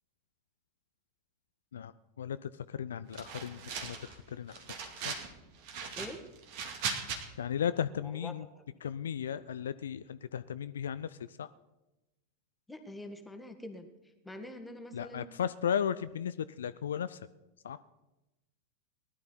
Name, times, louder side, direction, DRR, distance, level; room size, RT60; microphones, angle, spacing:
voice 1, 1.7-5.1 7.4-8.5 8.8-11.5 14.9-17.3 17.6-17.8, left 8 dB, 65° left, 14 dB, 0.4 m, -36 dB
sound 1, 3.1-4.1 4.5-5.3 5.6-7.2, right 6 dB, 45° right, 2.2 m, -38 dB
voice 2, 12.7-13.9 14.2-15.3, left 1 dB, 5° left, 6 dB, 1.7 m, -44 dB
18.5 x 11.5 x 4.5 m, 1.0 s
figure-of-eight pair, 90°, 0 cm